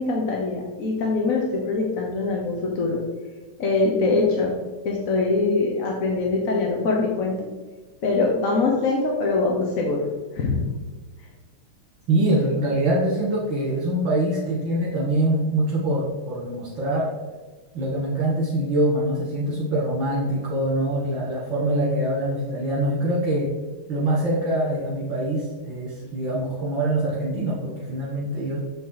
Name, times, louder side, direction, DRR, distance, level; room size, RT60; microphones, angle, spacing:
voice 1, 0.0-3.0 3.6-4.5 4.8-7.5 8.0-10.1 10.3-10.7, left 3 dB, 50° left, -1 dB, 1.0 m, -23 dB
voice 2, 12.1-17.1 17.7-23.5 23.9-28.6, right 1 dB, 65° right, -7 dB, 2.5 m, -24 dB
7.7 x 5.4 x 3.9 m, 1.3 s
omnidirectional pair, 2.4 m